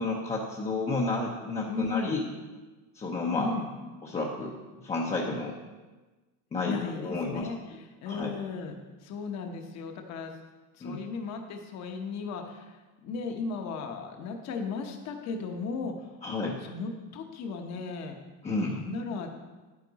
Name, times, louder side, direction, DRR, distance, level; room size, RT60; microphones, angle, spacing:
voice 1, 0.0-2.2 2.9-3.5 4.0-5.6 6.5-7.5 8.1-8.3 10.8-11.0 16.2-16.6 18.4-18.8, left 3 dB, 15° left, -2 dB, 0.7 m, -31 dB
voice 2, 1.7-2.2 3.4-3.7 6.6-8.8 9.0-10.3 10.8-12.8 13.0-16.1 16.6-18.2 18.7-19.3, left 4 dB, 35° left, 4 dB, 1.0 m, -36 dB
10.0 x 9.7 x 4.0 m, 1.2 s
cardioid pair, 155°, 44 cm